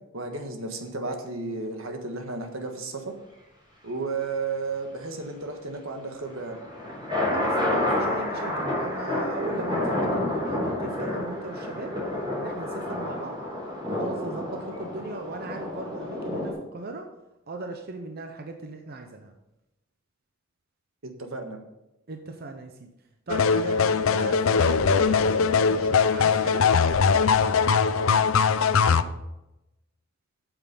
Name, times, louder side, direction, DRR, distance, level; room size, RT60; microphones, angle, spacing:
voice 1, 0.1-3.1 3.8-6.6 21.2-21.6 28.0-28.3, right 3 dB, 85° right, 5 dB, 1.5 m, -33 dB
sound 1, 6.3-16.5, left 1 dB, 25° right, 4.3 m, -29 dB
voice 2, 7.2-11.9 12.4-13.4 13.9-17.1 17.5-19.3 22.1-22.9 23.3-26.7 28.9-29.2, right 3 dB, 50° right, 4 dB, 0.8 m, -38 dB
sound 2, 23.3-29.0, left 5 dB, 75° left, 0.5 m, -21 dB
8.8 x 7.2 x 5.4 m, 0.96 s
head